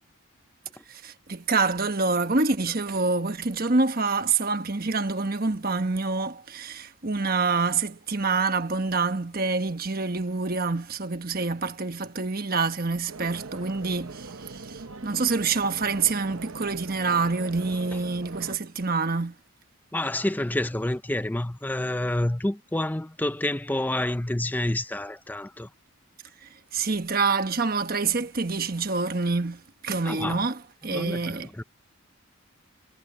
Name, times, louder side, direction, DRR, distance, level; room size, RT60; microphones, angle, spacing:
voice 1, 0.9-19.3 26.4-31.5, right 4 dB, 45° right, 1.3 m, -27 dB
sound 1, 13.1-18.6, right 3 dB, 70° right, 1.0 m, -41 dB
voice 2, 19.9-25.7 30.1-30.5 30.9-31.6, left 1 dB, 10° left, 0.4 m, -28 dB
head